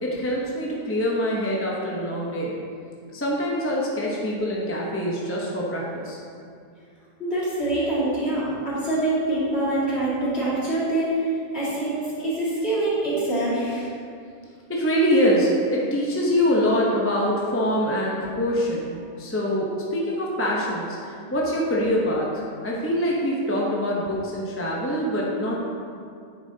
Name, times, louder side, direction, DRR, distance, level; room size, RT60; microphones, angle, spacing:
voice 1, 0.0-2.6 3.1-6.2 14.7-22.3 22.6-25.5, equal, 15° left, -4 dB, 0.6 m, -24 dB
voice 2, 7.2-13.9, right 2 dB, 45° left, -8 dB, 2.4 m, -25 dB
9.1 x 6.9 x 2.8 m, 2.4 s
omnidirectional pair, 1.6 m